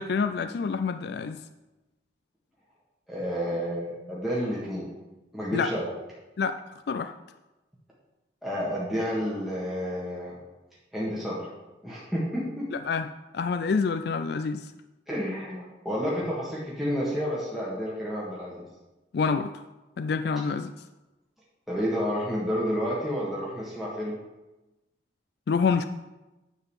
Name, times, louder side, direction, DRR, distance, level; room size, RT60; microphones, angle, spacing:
voice 1, 0.0-1.4 5.5-5.7 6.4-6.6 6.9-7.1 12.7-13.1 13.3-14.7 19.1-19.6 20.0-20.7 25.5-25.9, left 5 dB, 55° left, 9 dB, 0.3 m, -27 dB
voice 2, 3.1-4.9 5.3-5.9 8.4-10.4 10.9-11.5 11.8-12.7 15.1-18.6 21.7-24.2, equal, ahead, -7 dB, 1.6 m, -30 dB
10.5 x 4.0 x 7.2 m, 1.1 s
head